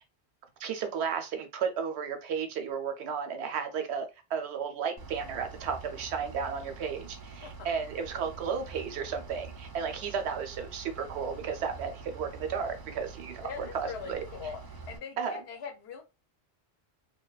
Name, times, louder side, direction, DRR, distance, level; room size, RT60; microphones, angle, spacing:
voice 1, 0.6-14.2 15.2-15.4, right 6 dB, 85° right, 0.9 m, -34 dB
Bus / Idling, 5.0-15.0, right 4 dB, 40° right, 0.3 m, -46 dB
voice 2, 13.4-14.6 14.9-16.0, left 6 dB, 75° left, 0.9 m, -41 dB
2.7 x 2.2 x 2.2 m
omnidirectional pair, 1.1 m